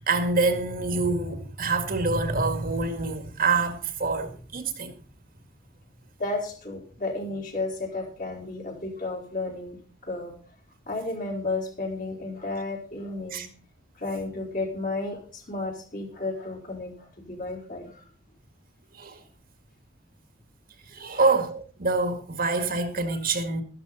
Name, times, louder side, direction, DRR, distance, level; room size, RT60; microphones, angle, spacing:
voice 1, 0.1-4.9 13.3-13.5 18.9-19.2 20.9-23.6, right 3 dB, 50° right, 2.0 m, -26 dB
voice 2, 6.2-9.8 10.0-10.3 10.9-13.5 14.0-17.9 21.1-21.3, left 2 dB, 45° left, 4.3 m, -32 dB
13.5 x 12.5 x 4.0 m
head